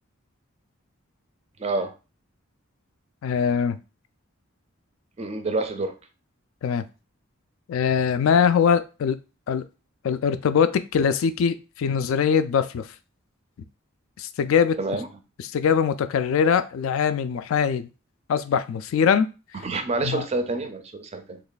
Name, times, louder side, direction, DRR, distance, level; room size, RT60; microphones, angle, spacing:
voice 1, 1.6-1.9 5.2-5.9 14.8-15.1 19.6-21.4, right 3 dB, 30° right, 8 dB, 0.4 m, -28 dB
voice 2, 3.2-3.8 6.6-6.8 7.7-9.2 9.5-9.6 10.0-12.9 14.2-14.8 15.4-17.9 18.3-19.3 20.0-20.2, left 7 dB, 70° left, 12 dB, 0.3 m, -22 dB
3.0 x 2.3 x 3.9 m, 0.31 s
head